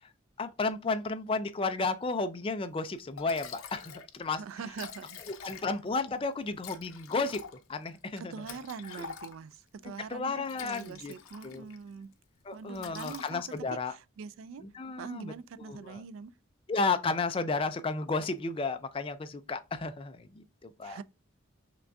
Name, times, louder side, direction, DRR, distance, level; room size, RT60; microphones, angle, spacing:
voice 1, 0.4-4.4 5.4-7.4 7.7-8.3 8.9-9.0 10.1-11.1 11.4-11.6 12.5-13.9 14.6-15.3 15.7-16.0 16.7-21.0, left 3 dB, 25° left, 0.3 m, -33 dB
Liquid, 2.8-2.9 3.2-4.1 4.4-4.5 4.7-5.9 6.6-9.6 10.3-11.8 12.1-12.4 12.7-13.8, left 7 dB, 85° left, 0.6 m, -46 dB
voice 2, 4.4-5.6 8.2-12.1 12.5-14.7 15.0-16.3 20.8-21.0, right 6 dB, 75° right, 0.3 m, -43 dB
5.8 x 2.3 x 2.5 m
head